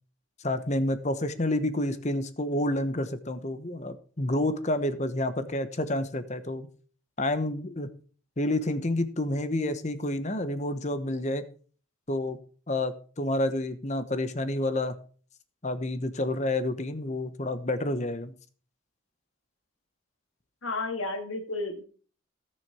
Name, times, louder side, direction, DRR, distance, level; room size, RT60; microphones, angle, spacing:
voice 1, 0.4-6.7 7.2-7.9 8.4-11.4 12.1-12.4 12.7-15.0 15.6-18.3, left 1 dB, 35° left, 11 dB, 1.1 m, -29 dB
voice 2, 20.6-21.8, left 2 dB, 80° left, 5 dB, 2.2 m, -32 dB
17.5 x 6.5 x 4.4 m, 0.41 s
head